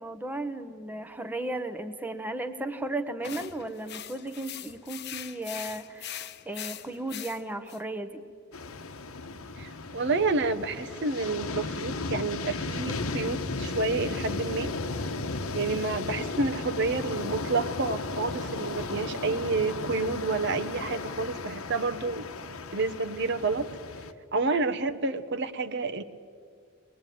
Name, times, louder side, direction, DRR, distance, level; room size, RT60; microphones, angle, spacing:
voice 1, 0.0-8.2, right 2 dB, 10° right, 7 dB, 0.9 m, -35 dB
sound 1, 3.2-7.8, left 10 dB, 50° left, 0.9 m, -41 dB
sound 2, 8.5-24.1, left 3 dB, 90° left, 1.2 m, -35 dB
voice 2, 9.6-14.7 15.5-22.3 22.7-23.7 24.3-26.0, right 3 dB, 55° right, 9 dB, 1.0 m, -29 dB
23.0 x 20.5 x 9.3 m, 2.2 s
head